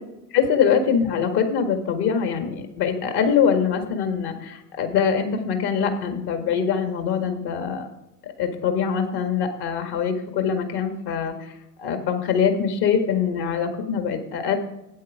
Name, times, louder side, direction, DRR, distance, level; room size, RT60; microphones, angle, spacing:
voice 1, 0.3-7.9 8.2-14.6, left 7 dB, 50° left, 6 dB, 1.9 m, -23 dB
8.7 x 8.4 x 5.0 m, 0.89 s
hypercardioid pair, 75°, 50 cm